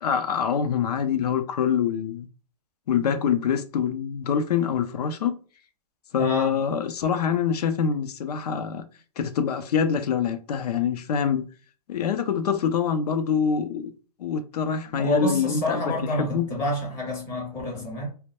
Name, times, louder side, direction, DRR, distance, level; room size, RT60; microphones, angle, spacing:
voice 1, 0.0-2.3 2.9-5.3 6.1-8.9 9.2-11.5 11.9-13.9 14.2-15.8 16.2-16.5, left 7 dB, 75° left, 0.5 m, -25 dB
voice 2, 6.2-6.6 15.0-18.1, equal, 15° left, 0.6 m, -28 dB
2.2 x 2.1 x 2.8 m
hypercardioid pair, 160°, 20 cm